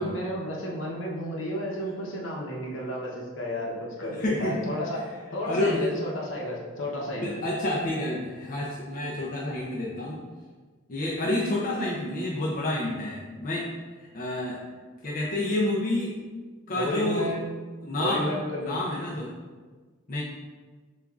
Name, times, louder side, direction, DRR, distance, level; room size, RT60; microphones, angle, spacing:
voice 1, 0.0-7.3 16.7-17.6 17.9-18.8 19.1-19.2, left 1 dB, 70° left, -2 dB, 0.9 m, -32 dB
voice 2, 4.0-4.6 5.4-5.9 7.2-10.2 10.9-13.7 14.1-14.6 15.0-16.1 16.7-17.3 17.8-18.3 18.6-19.3 20.1-20.2, left 1 dB, 40° left, -5 dB, 0.5 m, -29 dB
6.8 x 2.4 x 2.4 m, 1.4 s
head